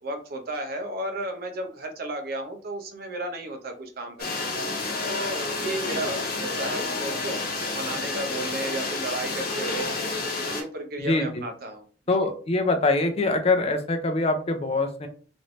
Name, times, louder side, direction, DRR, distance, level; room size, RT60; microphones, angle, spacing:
voice 1, 0.0-4.4 5.0-10.0 10.4-11.8, right 1 dB, 55° right, 4 dB, 0.6 m, -33 dB
sound 1, 4.2-10.6, left 3 dB, 60° left, 0.9 m, -30 dB
voice 2, 12.1-15.1, left 2 dB, 35° left, 6 dB, 0.5 m, -23 dB
3.1 x 2.6 x 3.0 m, 0.41 s
head